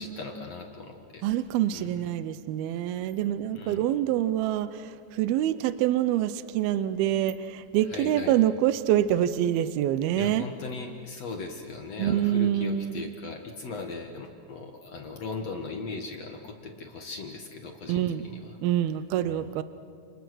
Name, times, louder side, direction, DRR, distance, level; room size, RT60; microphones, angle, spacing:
voice 1, 0.0-1.2 1.7-2.0 3.5-3.8 7.9-8.4 10.2-18.6 19.2-19.5, left 3 dB, 55° left, 2 dB, 1.9 m, -39 dB
voice 2, 1.2-10.5 12.0-13.1 17.9-18.3 18.6-19.6, right 11 dB, 80° right, 13 dB, 2.2 m, -26 dB
29.5 x 29.0 x 6.3 m, 2.3 s
omnidirectional pair, 5.2 m